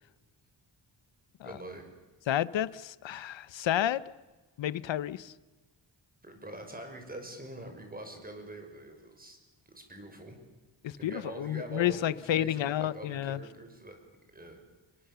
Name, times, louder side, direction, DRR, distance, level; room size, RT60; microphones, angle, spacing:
voice 1, 1.4-1.8 6.2-9.4 9.7-10.4 11.0-14.0 14.3-14.6, right 1 dB, 20° right, 5.9 m, -44 dB
voice 2, 2.3-4.0 4.6-5.3 10.8-13.4, left 11 dB, 75° left, 1.0 m, -30 dB
28.5 x 23.0 x 7.0 m
wide cardioid pair, 135°, 45 cm